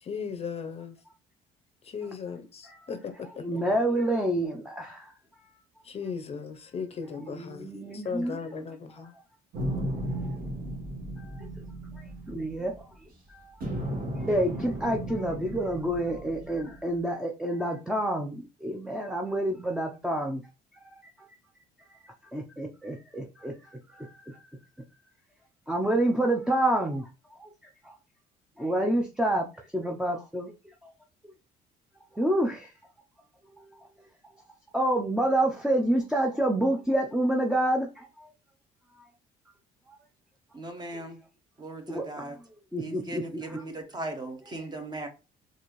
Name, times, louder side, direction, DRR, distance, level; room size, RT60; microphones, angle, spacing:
voice 1, 0.0-1.0 1.8-3.5 5.8-9.1 9.7-10.0, left 6 dB, 35° left, 0.6 m, -37 dB
voice 2, 3.4-5.0 7.2-8.4 12.3-12.7 14.3-18.3 18.6-20.4 22.3-23.5 24.0-24.1 25.7-27.0 27.4-27.5 28.6-29.5 29.7-30.5 32.2-32.7 34.7-38.1 41.9-42.0 42.7-43.4, right 1 dB, 5° right, 0.5 m, -27 dB
sound 1, 9.5-13.1 13.6-16.9, right 1 dB, 60° right, 1.4 m, -35 dB
voice 3, 40.5-41.2 41.6-42.4 42.8-45.1, right 2 dB, 25° right, 1.0 m, -38 dB
4.1 x 2.6 x 3.1 m
cardioid pair, 110°, 17 cm